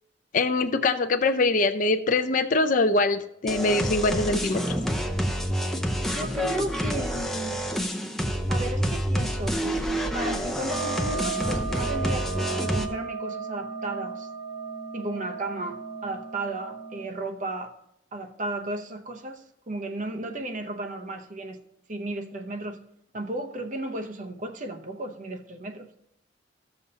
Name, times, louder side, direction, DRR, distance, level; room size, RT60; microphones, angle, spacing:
voice 1, 0.3-4.6, left 3 dB, 45° left, 0.5 m, -23 dB
sound 1, 3.5-12.9, equal, ahead, 0.6 m, -28 dB
voice 2, 6.1-7.9 8.5-9.6 10.1-14.3 14.9-17.8 18.1-21.6 21.9-22.8 23.1-25.9, right 2 dB, 40° right, 0.7 m, -34 dB
sound 2, 10.7-17.0, right 5 dB, 90° right, 2.1 m, -35 dB
13.5 x 6.9 x 2.8 m
head